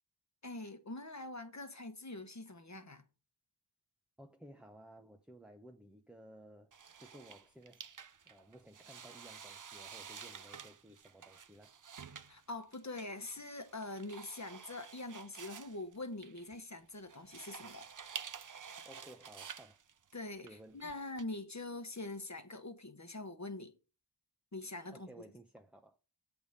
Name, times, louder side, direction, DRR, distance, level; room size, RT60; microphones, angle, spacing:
voice 1, 0.4-3.0 12.3-17.9 20.1-20.5 20.7-23.7 24.5-25.1, left 2 dB, 40° left, 1.2 m, -44 dB
voice 2, 4.2-6.7 7.0-7.9 8.3-11.8 18.8-19.8 20.4-21.1 24.9-26.0, right 1 dB, ahead, 0.7 m, -56 dB
sound 1, 6.7-21.2, right 7 dB, 45° right, 0.5 m, -51 dB
7.9 x 3.6 x 6.4 m
wide cardioid pair, 50°, 43 cm